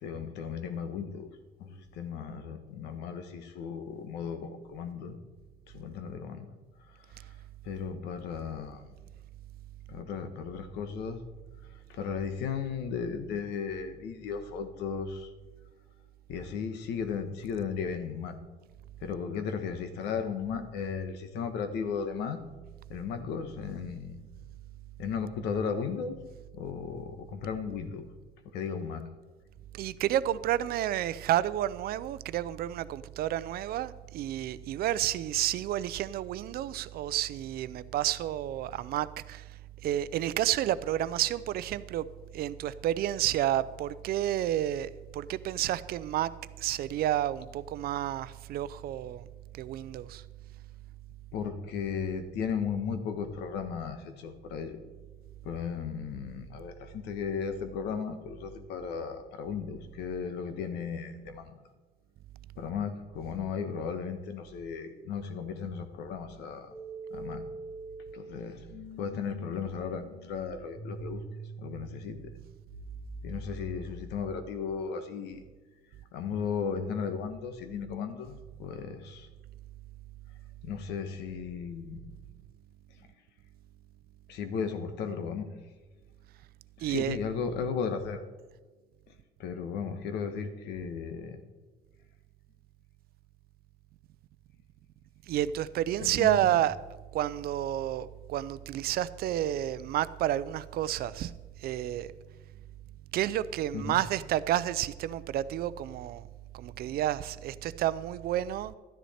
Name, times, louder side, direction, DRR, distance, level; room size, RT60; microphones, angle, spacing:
voice 1, 0.0-1.3 1.6-5.2 5.7-6.5 7.6-8.8 9.9-11.2 11.9-15.3 16.3-18.4 19.0-22.4 22.9-24.2 25.0-26.2 26.5-28.1 28.5-29.0 51.3-54.8 55.4-61.6 62.6-66.7 67.1-67.4 68.1-68.6 69.0-71.2 71.6-72.3 73.2-75.4 76.1-79.3 80.6-82.0 83.0-83.1 84.3-85.5 86.8-88.2 89.4-91.4 96.0-96.4 103.7-104.0, left 6 dB, 85° left, 1.3 m, -35 dB
voice 2, 29.7-42.1 42.3-46.3 46.6-49.2 49.5-50.2 86.8-87.2 95.3-96.8 97.1-101.3 101.6-102.1 103.1-106.2 106.5-108.7, right 12 dB, 65° right, 0.5 m, -30 dB
sound 1, 66.7-74.6, right 2 dB, 70° left, 3.9 m, -44 dB
13.0 x 10.5 x 4.3 m
cardioid pair, 110°, 17 cm